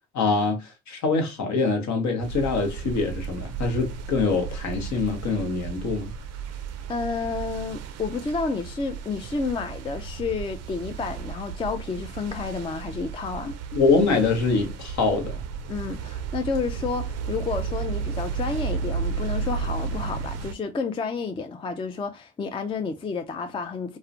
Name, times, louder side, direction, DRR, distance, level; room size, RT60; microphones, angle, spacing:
voice 1, 0.1-6.1 13.7-15.4, left 4 dB, 60° left, 0.9 m, -24 dB
sound 1, 2.2-20.5, right 6 dB, 50° right, 0.4 m, -33 dB
voice 2, 6.9-13.6 15.7-24.0, left 4 dB, 15° left, 0.3 m, -30 dB
2.3 x 2.1 x 2.4 m
hypercardioid pair, 55°, 33 cm